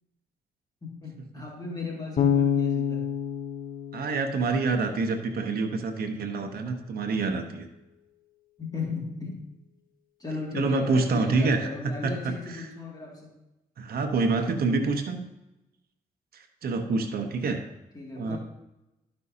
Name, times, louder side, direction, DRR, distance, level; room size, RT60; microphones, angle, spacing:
voice 1, 0.8-3.1 8.6-9.5 10.2-13.4 17.9-18.4, left 3 dB, 25° left, -2 dB, 2.3 m, -36 dB
Bass guitar, 2.2-5.2, left 8 dB, 55° left, 0.9 m, -27 dB
voice 2, 3.9-7.7 10.5-11.7 12.0-12.1 12.6-12.7 13.8-15.2 16.3-17.6 18.2-18.4, right 3 dB, 70° right, 5 dB, 1.0 m, -27 dB
12.0 x 5.5 x 2.8 m, 0.94 s
supercardioid pair, 55°, 16 cm